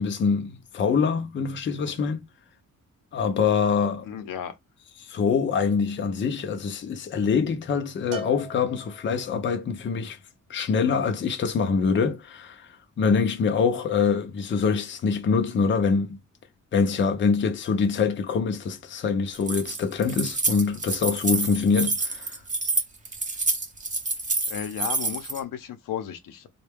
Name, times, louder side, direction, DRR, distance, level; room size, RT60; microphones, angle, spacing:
voice 1, 0.0-2.2 3.1-4.1 5.0-10.2 10.5-12.7 13.0-16.2 16.7-22.4, left 5 dB, 35° left, 0.5 m, -24 dB
voice 2, 4.1-4.6 24.5-26.5, left 9 dB, 90° left, 0.7 m, -34 dB
Bell, 8.1-9.5, equal, 90° right, 0.8 m, -41 dB
Keys jangling, 19.3-25.4, right 3 dB, 25° right, 0.7 m, -28 dB
3.8 x 2.2 x 3.4 m
wide cardioid pair, 165°, 32 cm